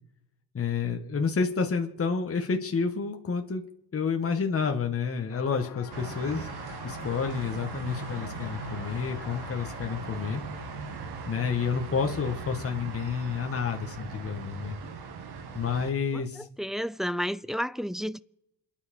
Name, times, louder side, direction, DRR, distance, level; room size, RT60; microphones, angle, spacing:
voice 1, 0.5-3.6 3.9-6.5 6.8-10.4 11.3-14.8 15.5-16.5, left 5 dB, 35° left, 1.9 m, -29 dB
sound 1, 5.3-12.8, left 8 dB, 75° left, 1.7 m, -48 dB
sound 2, 5.9-15.9, right 4 dB, 70° right, 2.3 m, -39 dB
voice 2, 16.6-18.2, equal, ahead, 0.6 m, -31 dB
27.5 x 10.0 x 4.6 m
supercardioid pair, 75°, 40 cm